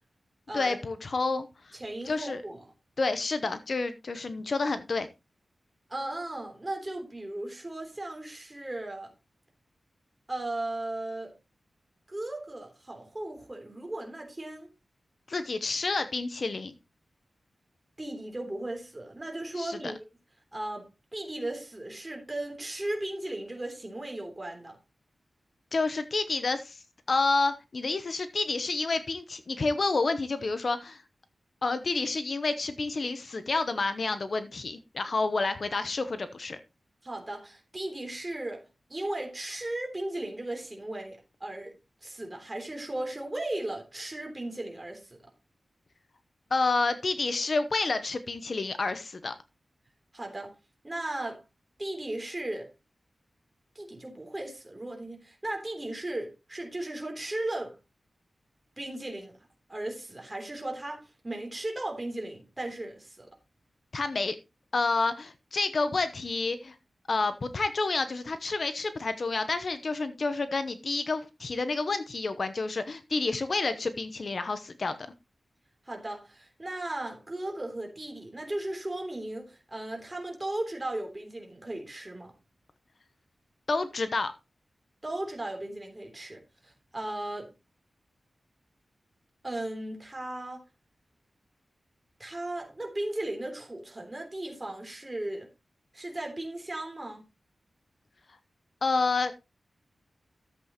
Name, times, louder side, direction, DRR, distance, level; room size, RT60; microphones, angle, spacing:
voice 1, 0.5-1.8 2.0-2.4 3.0-5.1 15.3-16.7 19.6-19.9 25.7-26.8 27.1-31.0 31.6-36.6 46.5-49.3 63.9-64.4 64.7-66.7 67.1-74.9 83.7-84.3 98.8-99.3, left 3 dB, 50° left, 0.8 m, -29 dB
voice 2, 1.7-2.6 5.9-9.1 10.3-11.3 12.1-14.7 18.0-19.9 20.5-24.8 37.0-38.6 38.9-41.7 42.0-45.2 50.1-50.5 50.8-51.4 51.8-52.7 53.7-57.8 58.8-59.4 59.7-63.3 75.8-82.3 85.0-87.5 89.4-90.6 92.2-95.5 95.9-97.2, right 1 dB, 20° right, 3.3 m, -36 dB
12.5 x 8.0 x 3.0 m
wide cardioid pair, 130°, 0 cm